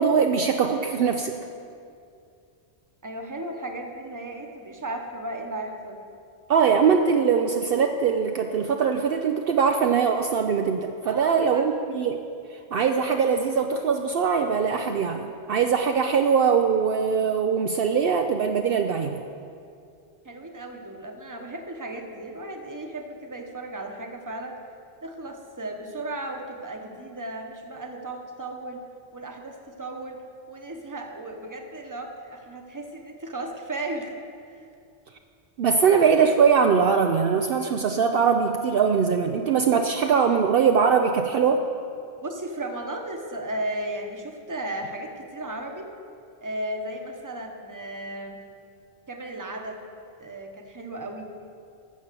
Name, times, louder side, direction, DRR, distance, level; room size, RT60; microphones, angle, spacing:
voice 1, 0.0-1.4 6.5-12.2 12.7-19.2 35.6-41.6, right 6 dB, 65° right, 5 dB, 0.7 m, -22 dB
voice 2, 3.0-6.0 11.0-11.7 20.2-24.6 25.0-28.8 29.1-30.2 30.5-34.2 34.5-34.6 42.2-45.9 46.4-48.4 49.1-49.8 50.2-51.3, right 1 dB, 20° right, 3 dB, 1.0 m, -35 dB
13.0 x 7.0 x 6.8 m, 2.4 s
omnidirectional pair, 1.1 m